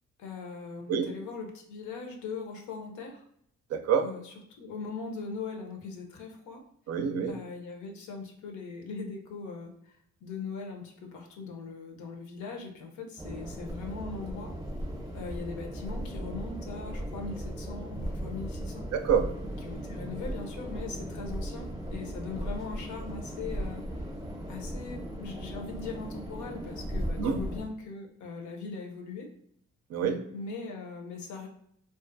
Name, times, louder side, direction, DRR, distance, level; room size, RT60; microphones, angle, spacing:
voice 1, 0.2-3.2 4.0-6.6 7.3-14.5 15.1-18.9 19.6-24.1 24.5-29.3 30.3-31.5, left 4 dB, 75° left, 3 dB, 0.6 m, -40 dB
voice 2, 3.7-4.1 6.9-7.4 18.9-19.3 27.2-27.4 29.9-30.3, right 7 dB, 60° right, 7 dB, 0.4 m, -27 dB
sound 1, 13.2-27.7, equal, 10° right, 0.6 m, -37 dB
2.4 x 2.4 x 2.5 m, 0.70 s
cardioid pair, 90°, 30 cm